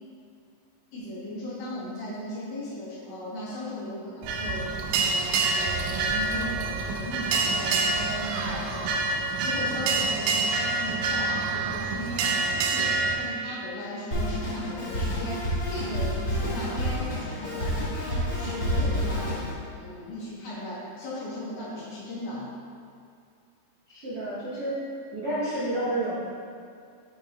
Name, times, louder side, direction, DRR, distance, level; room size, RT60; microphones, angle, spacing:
voice 1, 0.9-22.5, left 1 dB, 85° left, -8 dB, 0.9 m, -37 dB
sound 1, 4.2-13.2, right 3 dB, 85° right, 2.5 m, -27 dB
Drum kit, 14.1-19.5, equal, 35° left, 1.6 m, -29 dB
voice 2, 23.9-24.7 25.1-26.1, right 1 dB, 70° right, -11 dB, 0.6 m, -30 dB
8.7 x 5.2 x 3.0 m, 2.3 s
omnidirectional pair, 4.0 m